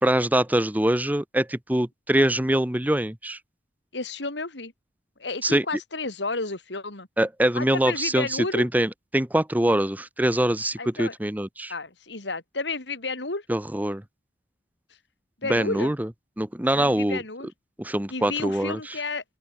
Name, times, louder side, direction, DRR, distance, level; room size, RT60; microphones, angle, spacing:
voice 1, 0.0-3.4 5.4-5.6 7.2-11.7 13.5-14.0 15.5-16.1 16.4-17.2 17.8-18.8, right 1 dB, 10° right, 0.9 m, -24 dB
voice 2, 3.9-4.7 5.2-7.1 7.5-8.7 10.8-11.1 11.7-13.4 15.4-15.9 16.7-17.5 18.1-19.2, left 3 dB, 75° left, 3.4 m, -32 dB
open air
head